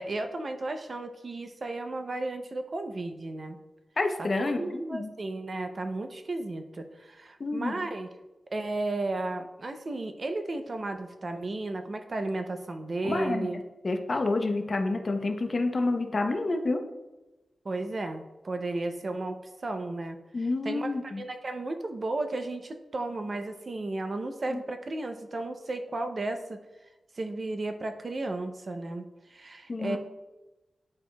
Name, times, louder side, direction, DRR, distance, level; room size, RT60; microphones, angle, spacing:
voice 1, 0.0-3.6 4.2-8.1 8.5-13.6 17.6-20.9 21.2-26.6 27.2-29.0 29.3-30.0, right 2 dB, 35° right, 7 dB, 0.4 m, -34 dB
voice 2, 4.0-5.1 7.4-7.7 13.0-13.5 13.8-16.8 20.3-21.2 24.5-24.6 29.7-30.0, left 2 dB, 35° left, 5 dB, 0.6 m, -28 dB
10.0 x 4.7 x 2.2 m, 1.1 s
wide cardioid pair, 175°, 0 cm